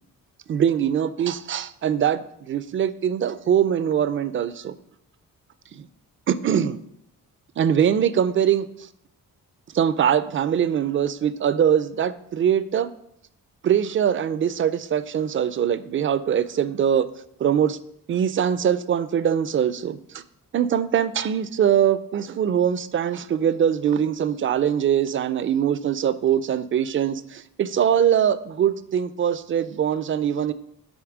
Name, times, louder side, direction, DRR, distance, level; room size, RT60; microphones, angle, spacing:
voice 1, 0.5-4.8 5.7-5.9 6.3-6.8 7.6-8.7 9.7-12.9 13.6-17.1 17.4-17.8 18.1-20.2 20.5-30.5, right 9 dB, 35° right, 15 dB, 0.4 m, -22 dB
7.9 x 3.3 x 4.8 m, 0.74 s
cardioid pair, 100°, 36 cm